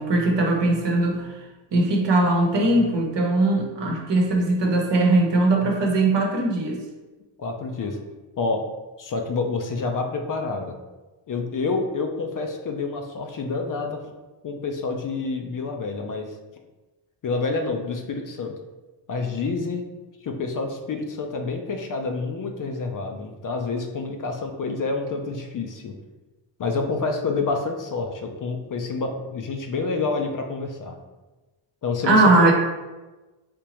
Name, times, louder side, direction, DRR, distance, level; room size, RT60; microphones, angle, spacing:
voice 1, 0.0-1.4 1.7-6.8 32.0-32.5, right 2 dB, 60° right, 0 dB, 1.0 m, -20 dB
voice 2, 7.4-8.0 8.4-8.6 9.0-10.7 11.3-14.0 14.4-16.4 17.2-18.5 19.1-19.8 20.2-26.0 26.6-31.0 31.8-32.5, left 3 dB, 40° left, 3 dB, 0.5 m, -28 dB
3.5 x 2.9 x 2.9 m, 1.1 s
cardioid pair, 65°, 49 cm